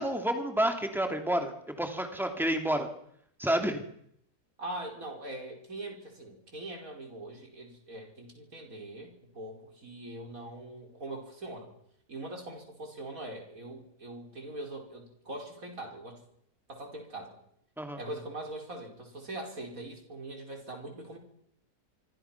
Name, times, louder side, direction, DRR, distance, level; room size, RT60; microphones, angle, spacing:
voice 1, 0.0-1.5 1.8-2.9 3.4-3.8 17.8-18.0, right 1 dB, ahead, 4 dB, 2.6 m, -29 dB
voice 2, 4.6-11.7 12.1-16.2 16.7-17.4 18.0-21.2, right 1 dB, 60° right, 2 dB, 5.5 m, -42 dB
25.5 x 25.0 x 6.0 m, 0.72 s
omnidirectional pair, 1.7 m